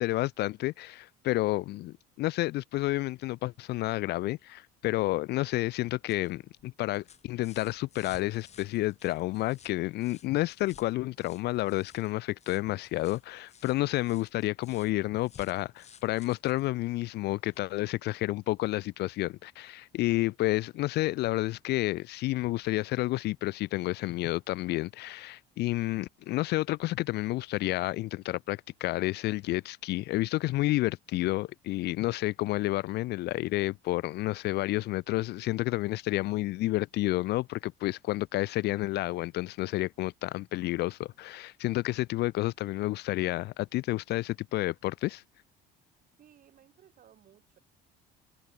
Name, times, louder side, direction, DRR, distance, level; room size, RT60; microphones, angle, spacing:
voice 1, 0.0-45.2, left 18 dB, 60° left, 0.4 m, -30 dB
sound 1, 5.7-17.7 19.1-19.2, left 8 dB, 35° left, 7.9 m, -57 dB
voice 2, 46.2-47.6, right 10 dB, 45° right, 8.0 m, -59 dB
cardioid pair, 150°, 20 cm